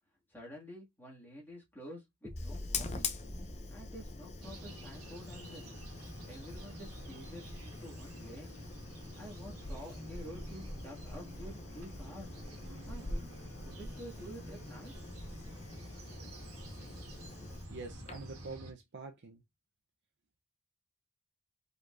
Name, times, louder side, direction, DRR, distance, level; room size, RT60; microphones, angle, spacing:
voice 1, 0.3-3.1 3.7-5.7 6.3-8.5 9.2-12.3 12.9-13.3 13.6-14.9, equal, 10° left, 1.9 m, -49 dB
sound 1, 2.2-6.2, left 1 dB, 20° right, 1.8 m, -47 dB
Fire, 2.4-18.5, left 3 dB, 30° left, 0.7 m, -45 dB
sound 2, 4.4-18.7, equal, 85° right, 1.5 m, -49 dB
voice 2, 17.7-19.4, right 4 dB, 55° right, 0.7 m, -46 dB
5.2 x 3.8 x 2.5 m
head